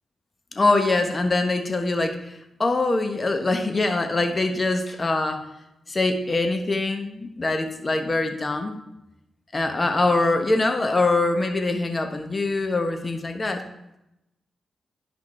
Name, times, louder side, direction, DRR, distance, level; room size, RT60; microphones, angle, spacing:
voice 1, 0.5-2.2 2.6-5.4 5.9-8.7 9.5-13.6, left 2 dB, 35° left, 6 dB, 1.1 m, -23 dB
10.5 x 5.1 x 3.2 m, 0.88 s
supercardioid pair, 40°, 0 cm